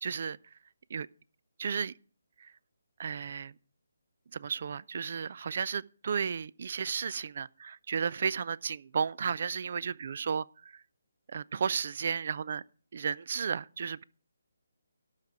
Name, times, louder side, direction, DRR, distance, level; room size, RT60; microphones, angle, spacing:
voice 1, 0.0-0.4 0.9-1.1 1.6-1.9 2.4-2.5 3.0-3.5 4.3-10.8 11.3-12.6 12.9-14.0, right 6 dB, 50° right, 0.4 m, -33 dB
12.5 x 4.9 x 7.1 m
figure-of-eight pair, 145°, 0 cm